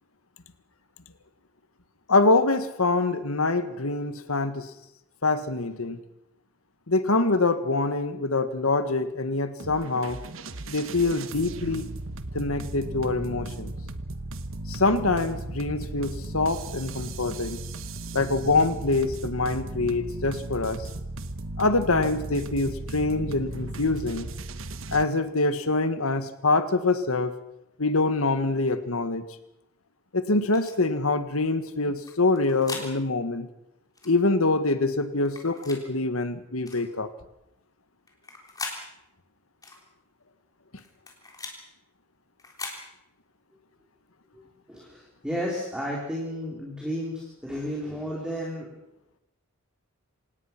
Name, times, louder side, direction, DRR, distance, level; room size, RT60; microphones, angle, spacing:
voice 1, 2.1-4.7 5.2-6.0 6.9-10.2 10.7-11.9 12.3-13.7 14.7-17.6 18.1-20.8 21.6-24.3 24.9-27.3 27.8-29.2 30.1-33.5 34.0-37.1, left 3 dB, 75° left, 11 dB, 1.7 m, -25 dB
sound 1, 9.6-25.1, right 2 dB, 65° right, 1.2 m, -36 dB
sound 2, 30.5-30.8 32.1-32.9 34.0-34.2 35.3-35.8 36.7-36.9 38.1-38.8 39.6-39.8 40.8-41.6 42.4-42.8, left 3 dB, 15° left, 3.6 m, -39 dB
voice 2, 44.7-48.7, equal, 5° right, -4 dB, 3.7 m, -32 dB
26.5 x 18.5 x 6.0 m, 0.86 s
head